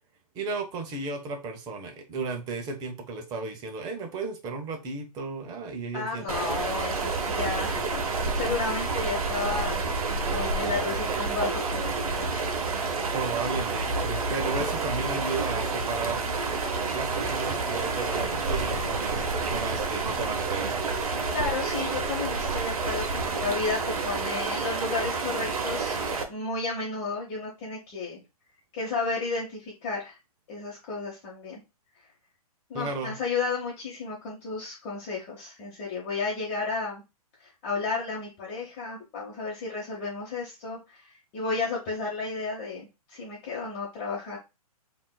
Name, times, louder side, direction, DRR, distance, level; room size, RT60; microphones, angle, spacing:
voice 1, 0.3-6.4 13.1-16.2 16.9-20.8 32.7-33.1, right 4 dB, 20° right, 4 dB, 0.6 m, -34 dB
voice 2, 5.9-9.8 10.3-12.5 21.3-25.9 26.3-28.2 28.7-30.2 30.5-31.6 32.7-37.0 37.4-44.4, left 4 dB, 30° left, -4 dB, 1.0 m, -32 dB
sound 1, 6.3-26.2, right 4 dB, 65° right, 0.8 m, -29 dB
3.5 x 2.5 x 2.2 m, 0.25 s
hypercardioid pair, 130°, 20 cm